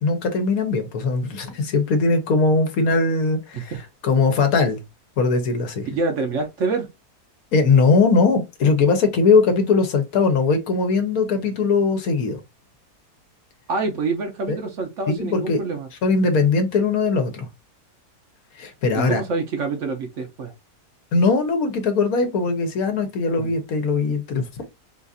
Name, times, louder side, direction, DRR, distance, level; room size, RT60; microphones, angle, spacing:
voice 1, 0.0-3.7 4.0-4.8 5.2-5.9 7.5-12.4 14.5-14.6 15.1-15.6 16.0-17.5 18.6-19.2 21.1-24.6, left 4 dB, 70° left, 1.2 m, -20 dB
voice 2, 5.9-6.9 13.7-15.9 18.9-20.5 23.4-23.5, right 3 dB, 60° right, 0.9 m, -26 dB
3.9 x 2.5 x 2.5 m
omnidirectional pair, 1.7 m